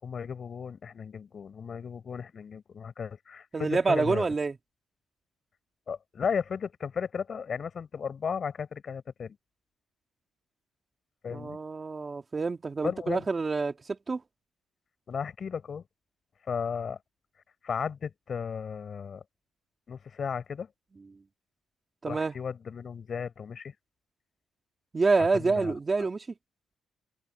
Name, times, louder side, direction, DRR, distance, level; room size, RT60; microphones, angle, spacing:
voice 1, 0.0-4.3 5.9-9.4 11.2-11.6 12.8-13.3 15.1-15.8 16.5-17.0 17.6-19.2 19.9-20.7 22.1-23.7 25.3-25.7 26.0-26.1, left 6 dB, 50° left, 4.5 m, -35 dB
voice 2, 3.5-4.6 11.3-14.2 22.0-22.4 24.9-26.3, right 4 dB, 30° right, 2.1 m, -27 dB
cardioid pair, 90°, 0 cm